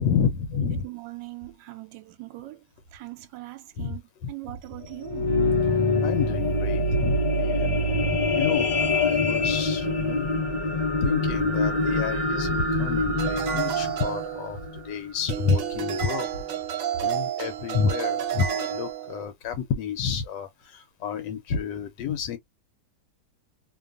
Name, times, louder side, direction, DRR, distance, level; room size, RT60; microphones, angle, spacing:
voice 1, 0.0-0.9 3.8-4.3 6.0-10.3 11.0-16.3 17.0-22.4, left 6 dB, 80° left, 1.2 m, -29 dB
voice 2, 0.5-2.6 2.9-4.0 4.3-5.3, right 15 dB, 85° right, 1.3 m, -40 dB
sound 1, 4.8-15.4 16.0-16.1, left 2 dB, 30° left, 1.1 m, -25 dB
sound 2, 13.2-14.9 15.3-19.3, right 10 dB, 70° right, 0.8 m, -30 dB
2.9 x 2.3 x 2.3 m
omnidirectional pair, 1.9 m